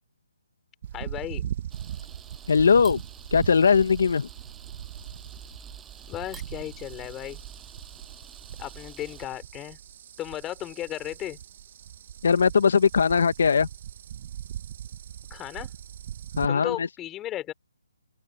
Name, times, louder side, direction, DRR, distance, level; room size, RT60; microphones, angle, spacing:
sound 1, 0.8-16.5, right 10 dB, 40° right, 1.2 m, -40 dB
voice 1, 0.9-1.5 6.1-7.4 8.6-9.8 10.2-11.4 15.3-15.7 16.5-17.5, left 13 dB, 15° left, 4.5 m, -35 dB
Camera, 1.7-9.2, right 8 dB, 10° right, 7.3 m, -48 dB
voice 2, 2.5-3.0 3.3-4.3 12.2-13.7 16.4-16.9, left 6 dB, 65° left, 1.4 m, -20 dB
open air
hypercardioid pair, 150°, 0 cm